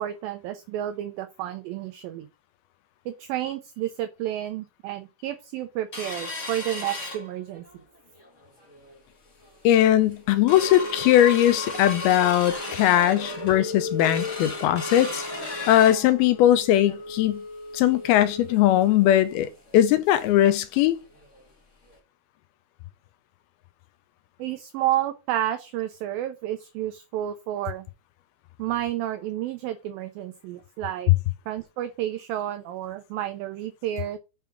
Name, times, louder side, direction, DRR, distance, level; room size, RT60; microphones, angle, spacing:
voice 1, 0.0-2.3 3.1-7.6 24.4-27.9 28.6-31.1 31.5-34.2, right 12 dB, 90° right, 2.0 m, -30 dB
sound 1, 5.9-7.8 8.2-8.3 8.6-9.0 9.5-9.6 9.9-20.4 20.8-20.9 21.2-21.4 21.9-22.0, left 2 dB, 55° left, 0.8 m, -35 dB
voice 2, 9.6-17.4 17.7-21.0, left 12 dB, 80° left, 2.2 m, -20 dB
7.2 x 3.4 x 5.9 m
omnidirectional pair, 4.8 m